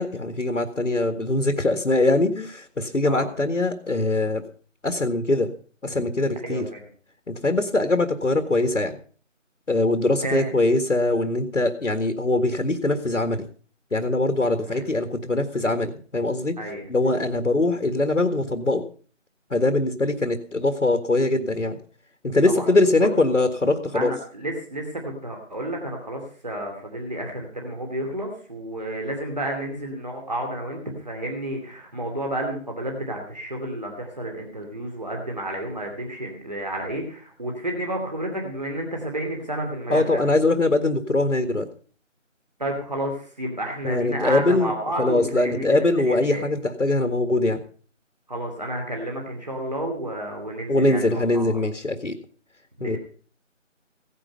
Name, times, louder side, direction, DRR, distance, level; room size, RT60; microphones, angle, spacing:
voice 1, 0.0-4.4 4.8-5.5 5.8-6.7 7.3-9.0 9.7-13.5 13.9-16.6 16.9-18.8 19.5-21.8 22.2-24.1 39.9-41.7 43.8-44.7 45.0-47.6 50.7-52.2 52.8-53.0, left 2 dB, 75° left, 8 dB, 1.8 m, -22 dB
voice 2, 6.4-6.8 10.2-10.5 14.7-14.8 16.6-16.9 22.4-22.7 23.0-23.1 23.9-40.2 42.6-46.5 48.3-51.6 52.8-53.0, right 1 dB, 35° right, 1 dB, 2.7 m, -31 dB
16.5 x 10.0 x 5.4 m, 0.42 s
figure-of-eight pair, 170°, 39 cm